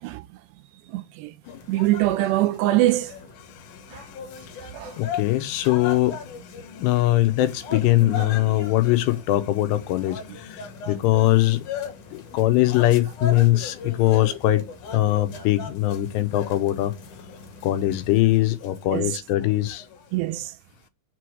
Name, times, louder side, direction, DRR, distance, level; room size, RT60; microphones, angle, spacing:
voice 1, 0.9-1.3 1.7-3.1 3.9-4.0 4.7-4.9 8.0-8.3 18.9-19.1 20.1-20.5, right 15 dB, 80° right, 2.6 m, -23 dB
sound 1, 1.4-20.2, left 5 dB, 55° left, 2.7 m, -39 dB
voice 2, 5.0-6.2 6.8-11.6 12.1-14.6 14.9-16.9 17.6-19.9, left 16 dB, 80° left, 2.7 m, -21 dB
6.9 x 4.6 x 4.7 m
omnidirectional pair, 5.1 m